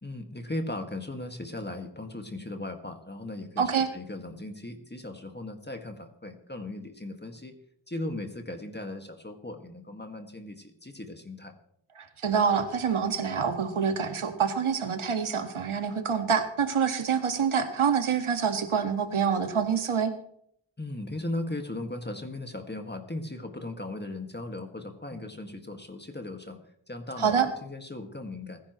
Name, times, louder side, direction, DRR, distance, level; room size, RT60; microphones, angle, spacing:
voice 1, 0.0-7.6 7.9-11.6 20.8-28.6, left 2 dB, 20° left, 5 dB, 1.9 m, -37 dB
voice 2, 3.6-3.9 12.0-20.1 27.2-27.5, right 6 dB, 75° right, 7 dB, 1.8 m, -26 dB
27.0 x 10.5 x 3.1 m, 0.70 s
cardioid pair, 50°, 49 cm